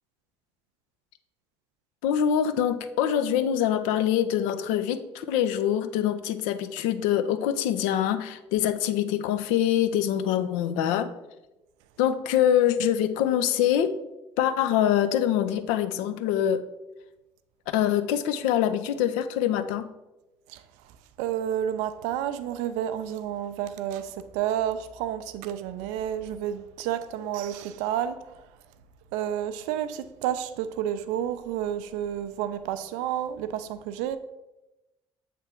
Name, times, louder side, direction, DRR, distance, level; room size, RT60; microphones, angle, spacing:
voice 1, 2.0-11.1 12.0-13.9 14.4-16.6 17.7-19.8, left 10 dB, 65° left, 0.5 m, -24 dB
voice 2, 21.2-28.4 29.1-34.2, right 10 dB, 65° right, 0.4 m, -30 dB
7.5 x 3.4 x 4.4 m
figure-of-eight pair, 50°, 13 cm